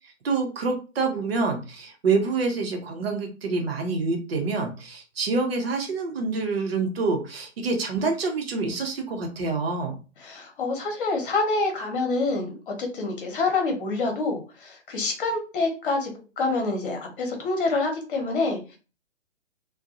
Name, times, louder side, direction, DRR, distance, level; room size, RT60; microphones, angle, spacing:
voice 1, 0.0-10.0, right 4 dB, 55° right, 4 dB, 0.8 m, -27 dB
voice 2, 10.2-16.1 16.4-18.8, left 3 dB, 50° left, 3 dB, 1.0 m, -27 dB
2.6 x 2.2 x 2.4 m, 0.33 s
figure-of-eight pair, 125°, 35 cm